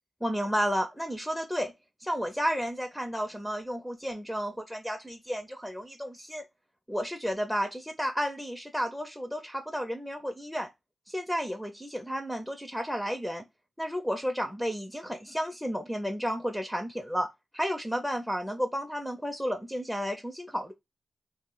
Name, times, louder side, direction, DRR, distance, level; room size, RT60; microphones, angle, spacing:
voice 1, 0.2-1.7 2.0-6.4 6.9-10.7 11.1-13.4 13.8-17.3 17.5-20.7, equal, ahead, 0.4 m, -32 dB
2.3 x 2.0 x 3.7 m
cardioid pair, 65°, 0 cm